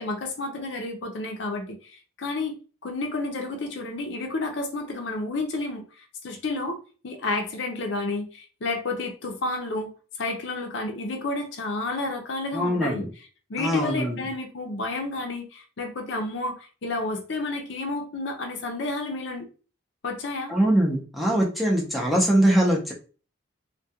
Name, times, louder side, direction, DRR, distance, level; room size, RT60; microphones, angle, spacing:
voice 1, 0.0-2.6 2.8-6.8 7.0-9.9 10.2-13.1 13.5-19.5 20.0-20.5, left 2 dB, 60° left, 3 dB, 0.5 m, -31 dB
voice 2, 12.5-13.1 13.6-14.2 20.5-22.9, right 1 dB, ahead, -3 dB, 0.5 m, -22 dB
2.3 x 2.2 x 2.7 m, 0.37 s
head